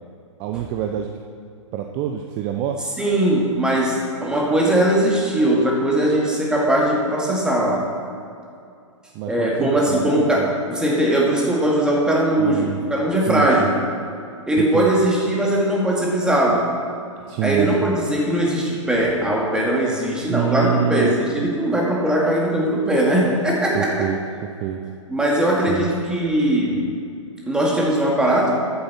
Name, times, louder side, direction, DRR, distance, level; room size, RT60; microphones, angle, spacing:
voice 1, 0.4-1.1 1.7-2.9 9.1-10.5 12.4-12.8 13.3-13.7 14.6-14.9 17.3-18.0 20.3-21.1 23.7-24.2 24.6-24.8 25.7-25.9, right 10 dB, 30° right, 4 dB, 0.7 m, -26 dB
voice 2, 3.0-7.8 9.3-13.8 14.5-16.7 17.4-24.1 25.1-26.8 27.5-28.5, right 1 dB, 5° right, -3 dB, 2.2 m, -20 dB
13.0 x 9.6 x 4.4 m, 2.5 s
figure-of-eight pair, 115°, 16 cm